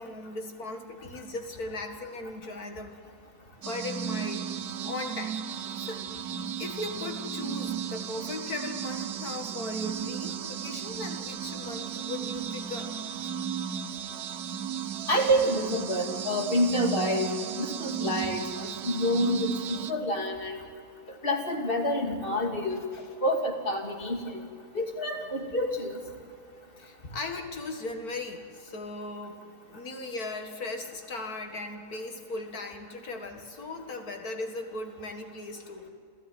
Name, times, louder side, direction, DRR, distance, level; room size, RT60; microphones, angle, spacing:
voice 1, 0.0-3.1 3.6-5.4 5.8-6.0 6.6-12.9 22.9-23.1 26.8-29.4 29.7-35.9, left 2 dB, 70° left, 4 dB, 2.4 m, -38 dB
sound 1, 3.6-19.9, right 8 dB, 80° right, 1.4 m, -35 dB
voice 2, 15.1-20.6 21.1-22.8 23.2-24.4 24.7-26.0, equal, 35° left, 2 dB, 3.0 m, -28 dB
28.5 x 14.0 x 9.3 m, 2.5 s
omnidirectional pair, 1.6 m